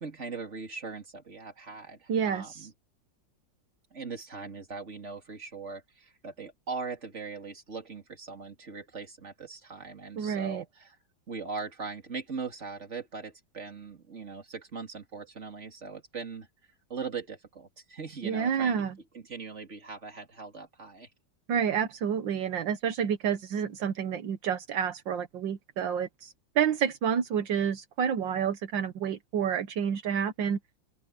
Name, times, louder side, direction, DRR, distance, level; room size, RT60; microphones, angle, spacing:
voice 1, 0.0-2.7 3.9-11.0 11.3-16.5 16.9-18.8 19.1-21.1, right 4 dB, 35° right, 3.3 m, -40 dB
voice 2, 2.1-2.7 10.2-10.6 18.2-18.9 21.5-30.6, right 8 dB, 75° right, 1.8 m, -29 dB
open air
omnidirectional pair, 2.1 m